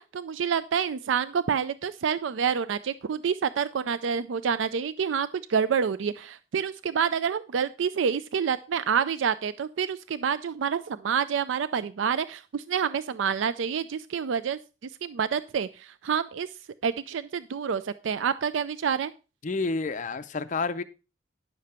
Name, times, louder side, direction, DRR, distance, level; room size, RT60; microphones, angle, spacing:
voice 1, 0.0-14.6 15.0-16.5 16.8-19.1, right 7 dB, 80° right, 0.4 m, -28 dB
voice 2, 19.4-20.8, left 3 dB, 40° left, 0.5 m, -29 dB
10.0 x 6.8 x 4.3 m
head